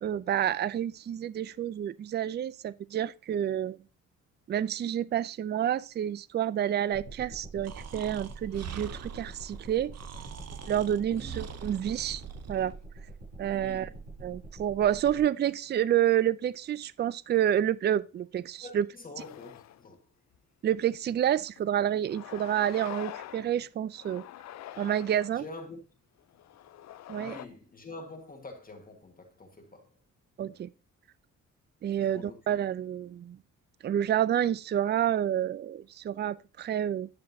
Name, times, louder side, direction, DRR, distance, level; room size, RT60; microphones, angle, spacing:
voice 1, 0.0-3.8 4.5-9.9 10.7-12.2 12.5-12.7 13.4-13.9 14.2-18.9 20.6-24.2 24.8-25.5 27.1-27.4 30.4-30.7 31.8-33.4 33.8-37.1, right 10 dB, 35° right, 0.4 m, -29 dB
sound 1, 6.9-15.2, right 3 dB, 85° right, 5.1 m, -45 dB
Breathing, 7.6-12.8, right 8 dB, 55° right, 0.8 m, -44 dB
voice 2, 13.5-14.0 18.6-20.0 25.3-25.8 27.2-29.9 32.0-32.4, left 2 dB, 30° left, 1.6 m, -46 dB
sound 2, 19.2-19.9 20.3-20.4 21.5-21.6 22.1-23.5 23.9-25.4 26.2-27.5, left 12 dB, 60° left, 0.5 m, -44 dB
9.5 x 6.4 x 2.7 m
cardioid pair, 85°, 31 cm